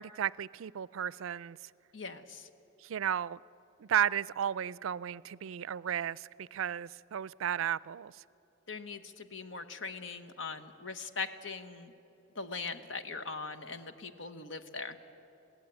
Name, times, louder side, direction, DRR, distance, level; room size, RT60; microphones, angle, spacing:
voice 1, 0.0-1.6 2.8-3.4 3.8-8.1, right 9 dB, 80° right, 0.4 m, -34 dB
voice 2, 1.9-2.5 8.7-11.9 12.3-15.0, left 4 dB, 65° left, 1.1 m, -41 dB
21.0 x 16.5 x 9.2 m
head